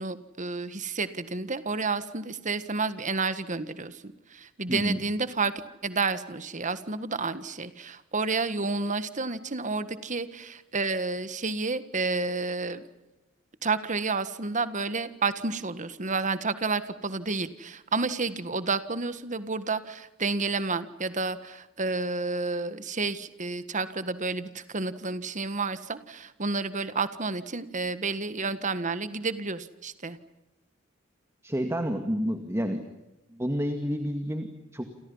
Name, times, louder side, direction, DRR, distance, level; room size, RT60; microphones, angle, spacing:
voice 1, 0.0-5.5 5.8-12.9 13.6-30.2, right 3 dB, 40° right, 12 dB, 1.6 m, -30 dB
voice 2, 4.7-5.0 31.4-32.8 33.3-34.9, equal, 15° right, 7 dB, 2.0 m, -29 dB
29.0 x 28.5 x 5.7 m, 0.95 s
head